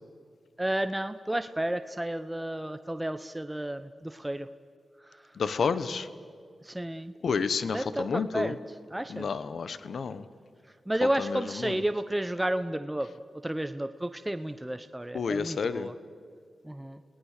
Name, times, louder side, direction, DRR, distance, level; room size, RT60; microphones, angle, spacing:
voice 1, 0.6-4.5 5.1-5.3 6.6-7.1 7.7-8.5 8.9-9.4 10.9-13.1 13.4-15.9 16.6-17.0, right 1 dB, 10° right, 10 dB, 0.9 m, -32 dB
voice 2, 5.3-6.1 7.2-8.6 9.1-10.3 11.0-11.8 15.1-15.9, left 5 dB, 75° left, 14 dB, 1.2 m, -30 dB
29.5 x 18.5 x 6.7 m, 2.3 s
cardioid pair, 60°, 0 cm